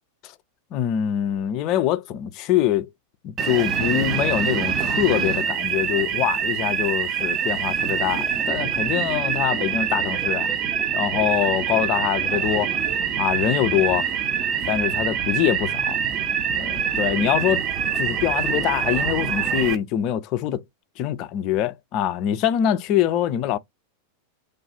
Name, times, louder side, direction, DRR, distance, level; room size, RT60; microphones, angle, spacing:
voice 1, 0.7-2.9 3.2-10.5 10.9-12.7 13.2-14.1 14.7-16.0 16.5-17.7 18.0-20.6 21.0-23.6, left 11 dB, 40° left, 0.4 m, -24 dB
sound 1, 3.4-19.8, right 7 dB, 30° right, 0.7 m, -25 dB
3.3 x 2.3 x 4.1 m
figure-of-eight pair, 90°, 0 cm